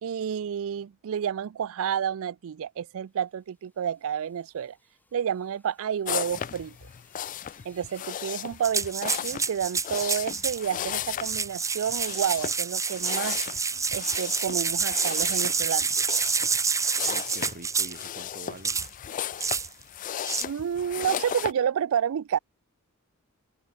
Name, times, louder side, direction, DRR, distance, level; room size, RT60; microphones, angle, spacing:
voice 1, 0.0-4.8 5.1-6.8 7.6-13.4 13.9-15.9 20.4-22.4, right 8 dB, 65° right, 0.4 m, -30 dB
sound 1, 3.0-8.9, left 2 dB, 10° left, 7.3 m, -64 dB
sound 2, 6.0-21.5, left 9 dB, 35° left, 0.4 m, -36 dB
sound 3, 8.6-10.6 11.1-18.1 18.6-18.9 19.4-19.7 20.2-20.4, right 5 dB, 15° right, 0.7 m, -28 dB
voice 2, 17.0-18.8, right 2 dB, 45° right, 2.2 m, -45 dB
open air
head